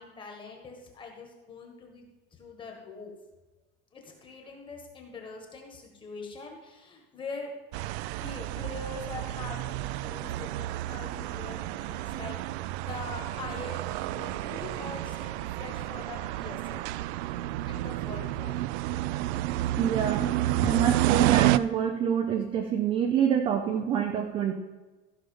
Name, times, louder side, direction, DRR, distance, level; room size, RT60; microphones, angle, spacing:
voice 1, 0.0-2.1 2.3-3.1 3.9-7.5 8.2-12.4 12.6-16.9 17.7-18.5, left 4 dB, 15° left, 1 dB, 1.5 m, -43 dB
sound 1, 7.7-21.6, right 15 dB, 80° right, 0.5 m, -30 dB
voice 2, 19.8-20.3 20.6-24.5, right 8 dB, 15° right, 4 dB, 0.4 m, -26 dB
14.0 x 5.7 x 5.4 m, 1.2 s
cardioid pair, 175°, 33 cm